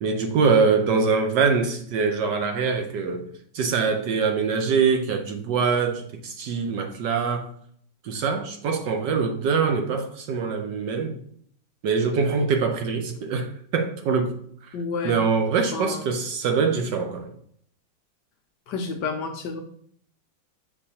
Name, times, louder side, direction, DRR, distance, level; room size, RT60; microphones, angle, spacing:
voice 1, 0.0-3.3 3.5-7.5 8.0-11.2 11.8-14.3 15.0-17.3, right 5 dB, 70° right, 5 dB, 1.2 m, -23 dB
voice 2, 14.7-15.2 15.7-16.0 18.7-19.6, left 4 dB, 70° left, 4 dB, 1.1 m, -30 dB
7.0 x 5.0 x 2.8 m, 0.62 s
omnidirectional pair, 2.2 m